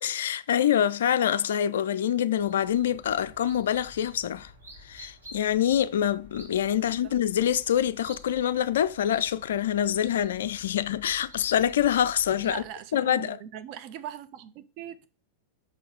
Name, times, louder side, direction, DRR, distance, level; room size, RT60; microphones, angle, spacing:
voice 1, 0.0-4.5 4.8-12.6 12.9-13.4, left 10 dB, 60° left, 0.3 m, -25 dB
sound 1, 2.3-12.7, left 1 dB, 80° right, 3.0 m, -51 dB
voice 2, 6.7-7.2 12.4-15.1, right 10 dB, 40° right, 0.6 m, -41 dB
5.3 x 4.6 x 4.8 m
figure-of-eight pair, 90°, 0 cm